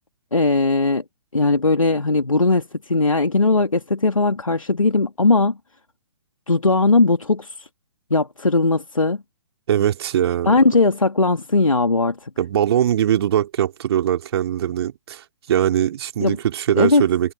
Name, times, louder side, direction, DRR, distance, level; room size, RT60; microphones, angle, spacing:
voice 1, 0.3-1.0 1.3-5.6 6.5-7.7 8.1-9.2 10.4-12.3 16.2-16.4 16.7-17.0, left 3 dB, 90° left, 2.6 m, -18 dB
voice 2, 9.7-10.6 12.4-17.3, right 10 dB, 50° right, 2.8 m, -21 dB
figure-of-eight pair, 130°, 17 cm